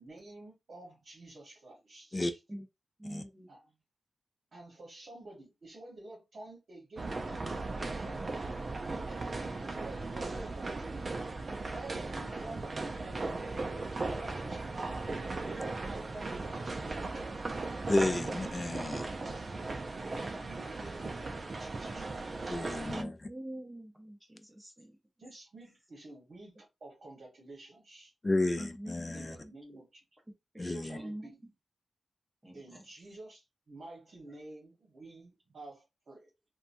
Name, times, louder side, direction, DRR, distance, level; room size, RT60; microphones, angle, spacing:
voice 1, 0.0-2.4 3.5-3.7 4.5-8.2 8.9-11.1 11.7-14.9 15.9-17.6 20.1-22.8 25.2-28.1 29.1-30.0 30.6-31.4 32.5-36.3, right 2 dB, 60° right, 1.1 m, -50 dB
voice 2, 3.0-3.5 10.0-10.4 12.0-12.1 18.3-18.4 22.9-25.0 28.6-29.8 30.5-30.7 30.9-31.5 32.4-32.8, right 1 dB, 15° right, 0.8 m, -45 dB
sound 1, 7.0-23.0, right 3 dB, 45° right, 0.4 m, -37 dB
voice 3, 17.9-19.1 22.5-23.1 28.2-29.4 30.6-31.0, left 2 dB, 25° left, 0.4 m, -32 dB
2.9 x 2.2 x 2.6 m
wide cardioid pair, 105°, 0 cm